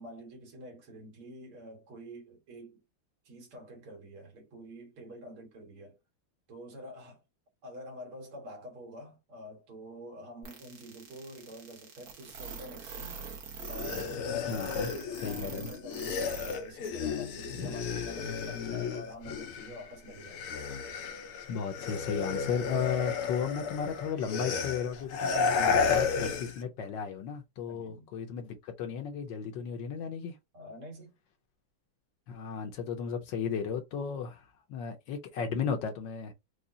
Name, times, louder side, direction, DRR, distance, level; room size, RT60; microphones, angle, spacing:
voice 1, 0.0-2.8 3.3-6.0 6.5-7.2 7.6-13.2 13.7-20.5 27.7-28.1 30.5-31.1, equal, 80° right, 2.3 m, -47 dB
sound 1, 10.4-16.6 16.8-16.9 17.4-17.5, right 5 dB, 50° right, 1.3 m, -43 dB
sound 2, 13.6-19.8 20.1-26.6, left 5 dB, 85° left, 1.6 m, -33 dB
voice 2, 14.5-14.9 15.2-15.7 17.5-17.7 21.5-30.3 32.3-34.4 34.7-36.3, left 6 dB, 70° left, 1.3 m, -34 dB
4.9 x 2.4 x 2.6 m
omnidirectional pair, 2.3 m